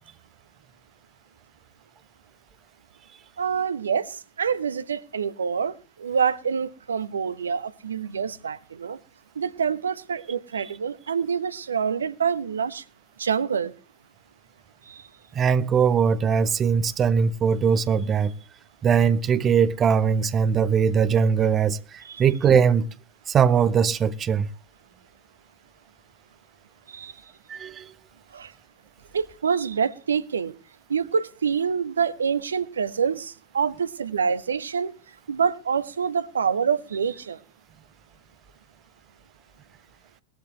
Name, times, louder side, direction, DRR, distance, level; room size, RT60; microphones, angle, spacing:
voice 1, 3.4-9.0 9.3-12.8 13.2-13.7 14.8-15.1 22.0-22.2 26.9-27.2 28.3-28.5 29.1-30.5 30.9-34.9 35.3-37.4, right 6 dB, 70° right, 1.0 m, -26 dB
voice 2, 15.3-18.3 18.8-22.9 23.3-24.5 27.5-27.9, right 7 dB, 25° right, 1.1 m, -21 dB
20.0 x 14.0 x 3.3 m
figure-of-eight pair, 90°, 0 cm